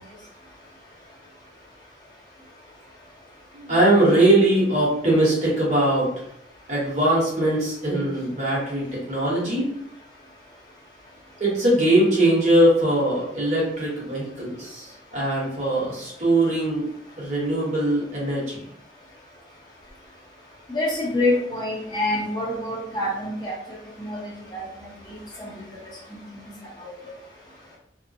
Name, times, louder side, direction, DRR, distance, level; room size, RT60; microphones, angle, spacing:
voice 1, 3.5-6.1 6.7-9.7 11.4-16.9 17.2-18.6, right 1 dB, 40° right, -5 dB, 1.0 m, -21 dB
voice 2, 20.7-23.5 24.0-25.5 26.3-26.5 26.8-26.9, left 1 dB, 20° left, -5 dB, 0.7 m, -27 dB
2.9 x 2.1 x 2.5 m, 0.75 s
head